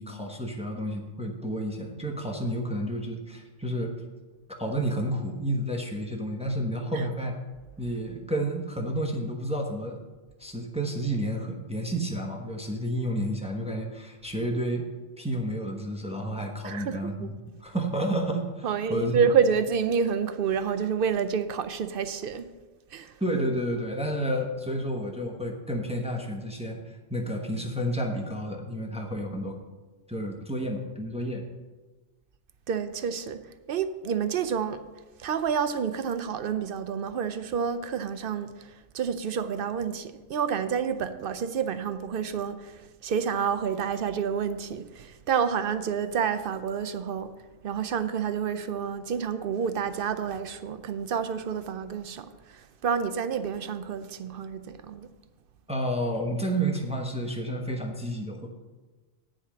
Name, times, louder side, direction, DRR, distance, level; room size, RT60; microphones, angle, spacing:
voice 1, 0.0-3.9 4.6-7.4 7.8-10.0 10.4-14.9 15.2-18.6 18.9-19.2 23.2-29.6 30.1-31.4 55.7-58.5, right 1 dB, 5° right, 1.0 m, -30 dB
voice 2, 16.6-17.0 18.6-22.5 22.9-23.1 32.7-33.4 33.7-34.8 35.2-47.3 47.6-55.1, right 7 dB, 55° right, 0.7 m, -29 dB
9.8 x 5.1 x 7.3 m
omnidirectional pair, 1.3 m